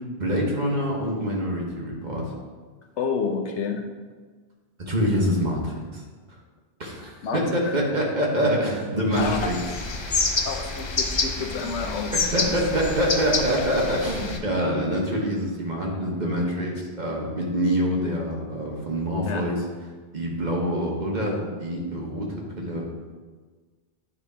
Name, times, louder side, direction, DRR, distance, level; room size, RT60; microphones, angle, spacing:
voice 1, 0.2-2.3 4.9-6.0 6.8-9.6 12.1-19.6 20.1-22.3 22.6-22.9, equal, 40° right, -2 dB, 1.3 m, -25 dB
voice 2, 3.0-3.8 7.2-7.8 9.2-9.4 10.4-12.1 12.4-12.5 19.2-19.5, left 5 dB, 80° left, 3 dB, 1.1 m, -29 dB
sound 1, 9.1-14.4, left 3 dB, 40° left, 0.4 m, -28 dB
9.5 x 3.6 x 4.2 m, 1.4 s
omnidirectional pair, 1.2 m